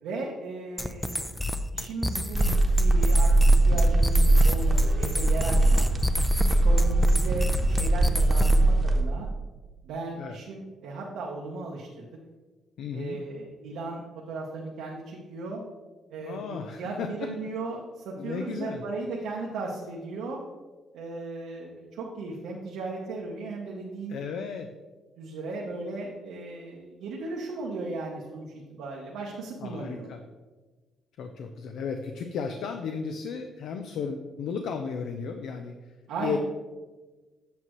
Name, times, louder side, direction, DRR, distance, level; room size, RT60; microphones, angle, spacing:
voice 1, 0.0-1.2 1.7-5.9 6.6-9.3 9.8-12.1 12.9-15.6 16.1-20.4 20.9-24.2 25.2-30.1 36.1-36.4, right 3 dB, 90° right, -3 dB, 0.9 m, -36 dB
sound 1, 0.8-8.8, left 1 dB, 10° left, 0.5 m, -30 dB
sound 2, 2.3-9.0, right 2 dB, 25° right, 1.0 m, -21 dB
voice 2, 12.8-13.2 16.2-17.3 18.2-18.8 24.1-24.7 29.6-30.2 31.2-35.7 36.2-36.4, left 6 dB, 80° left, 6 dB, 0.5 m, -34 dB
8.3 x 6.1 x 3.0 m, 1.3 s
cardioid pair, 90°, 0 cm